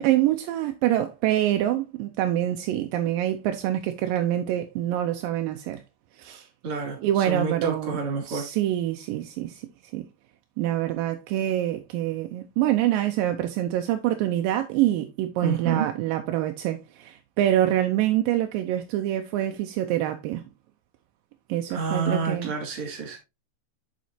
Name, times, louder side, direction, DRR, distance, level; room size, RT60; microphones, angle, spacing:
voice 1, 0.0-5.8 6.2-6.5 7.0-8.0 8.3-9.6 9.9-10.0 10.6-20.4 21.5-22.6, right 13 dB, 80° right, 2.1 m, -25 dB
voice 2, 6.6-8.4 15.4-15.9 21.7-23.2, right 4 dB, 40° right, 3.3 m, -29 dB
7.5 x 7.3 x 2.7 m
omnidirectional pair, 4.5 m